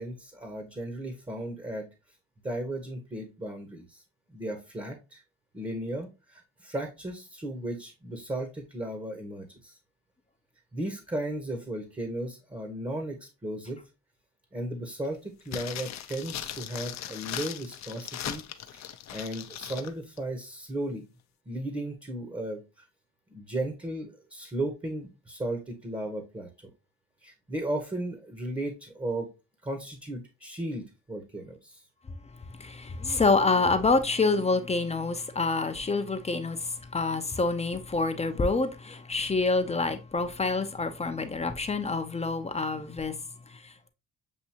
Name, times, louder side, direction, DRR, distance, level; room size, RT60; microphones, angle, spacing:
voice 1, 0.0-1.9 2.4-4.0 4.3-5.2 5.5-9.8 10.7-13.8 14.5-18.4 18.7-21.0 21.5-22.6 23.3-26.7 27.2-29.3 29.6-31.8, right 1 dB, 15° right, 1.0 m, -35 dB
sound 1, 15.5-19.9 20.2-20.3, left 10 dB, 65° left, 0.6 m, -38 dB
voice 2, 32.6-43.2 43.5-43.9, left 3 dB, 20° left, 0.6 m, -27 dB
7.2 x 2.6 x 2.7 m
cardioid pair, 90°, 30 cm